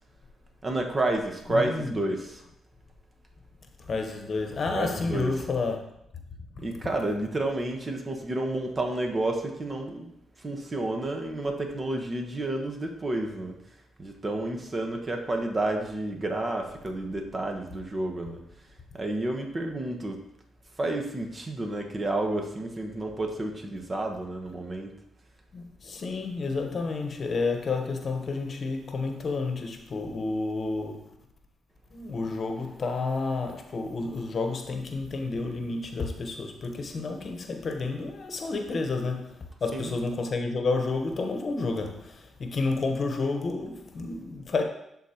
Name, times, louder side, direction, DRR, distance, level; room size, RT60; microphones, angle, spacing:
voice 1, 0.6-2.4 4.7-5.3 6.6-10.1 10.4-13.6 14.0-18.4 18.9-20.2 20.8-24.9 39.7-39.9, right 2 dB, 35° right, 1.2 m, -30 dB
voice 2, 1.5-2.0 3.8-5.8 25.5-31.2 31.9-44.6, left 3 dB, 55° left, 1.0 m, -30 dB
11.0 x 4.1 x 2.9 m
supercardioid pair, 55°, 0 cm